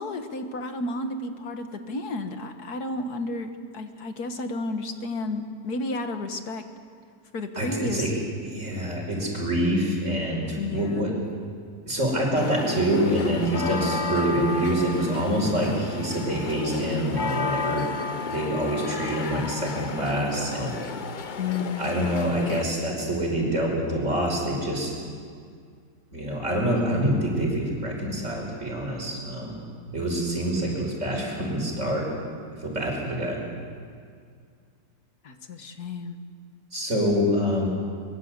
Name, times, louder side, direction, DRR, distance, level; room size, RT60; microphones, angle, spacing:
voice 1, 0.0-6.7 7.3-8.1 10.6-11.1 21.4-21.9 35.2-36.2, left 2 dB, 75° left, 7 dB, 2.0 m, -32 dB
voice 2, 7.6-11.1 11.9-17.9 18.3-20.8 21.8-24.9 26.1-29.6 29.9-32.0 32.6-33.4 36.7-37.7, right 1 dB, 50° right, -1 dB, 6.0 m, -26 dB
sound 1, 12.4-22.6, left 5 dB, 40° left, 0.7 m, -32 dB
23.5 x 22.5 x 8.2 m, 2.1 s
omnidirectional pair, 1.7 m